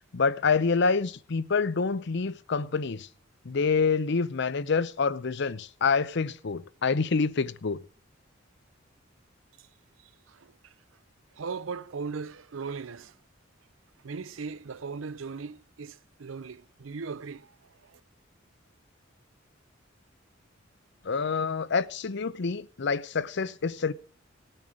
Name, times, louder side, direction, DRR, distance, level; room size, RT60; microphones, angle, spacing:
voice 1, 0.1-3.1 3.4-7.8 21.0-23.9, left 5 dB, 60° left, 0.6 m, -27 dB
voice 2, 10.0-10.7 11.3-13.2 14.0-18.0, right 5 dB, 90° right, 0.6 m, -38 dB
17.5 x 9.1 x 4.8 m
head